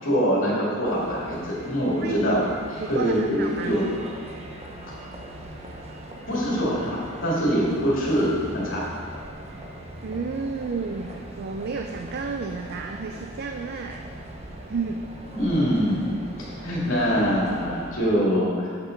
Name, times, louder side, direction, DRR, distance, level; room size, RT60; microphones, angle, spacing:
voice 1, 0.0-2.4 2.7-3.8 6.3-8.9 15.3-18.7, equal, 80° left, -6 dB, 2.4 m, -24 dB
sound 1, 0.8-18.0, right 1 dB, 30° right, 0.9 m, -40 dB
voice 2, 2.8-3.8 10.0-14.1 14.7-15.0, right 4 dB, 55° right, 4 dB, 0.4 m, -31 dB
8.2 x 6.7 x 5.2 m, 2.1 s
head